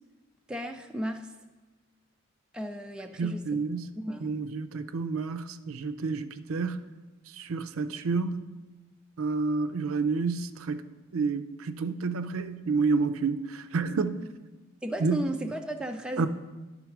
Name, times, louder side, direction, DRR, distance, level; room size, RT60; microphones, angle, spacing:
voice 1, 0.5-1.3 2.5-3.6 4.0-4.3 14.8-16.3, right 1 dB, 5° right, 0.3 m, -34 dB
voice 2, 3.2-3.9 4.2-6.8 7.4-8.5 9.2-10.8 11.1-14.2 15.0-15.3 16.2-16.3, right 4 dB, 80° right, 0.5 m, -29 dB
11.0 x 4.0 x 5.9 m
head